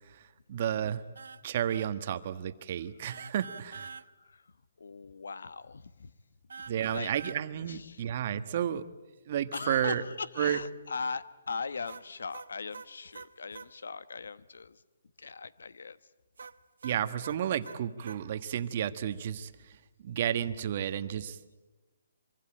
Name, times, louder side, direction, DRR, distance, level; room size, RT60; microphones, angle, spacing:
voice 1, 0.5-1.0 1.4-3.9 6.7-8.9 9.3-10.0 10.4-10.6 16.8-19.5 20.0-21.4, right 10 dB, 45° right, 11 dB, 1.3 m, -32 dB
sound 1, 1.2-1.4 1.7-1.9 3.1-4.1 6.5-7.4 11.9-13.7 16.4-18.2, right 5 dB, 80° right, 1.0 m, -46 dB
voice 2, 3.9-6.1 6.9-7.1 7.7-8.0 9.5-14.8 15.2-16.1, left 4 dB, 80° left, 16 dB, 1.1 m, -40 dB
24.5 x 24.0 x 8.8 m, 1.1 s
hypercardioid pair, 150°, 0 cm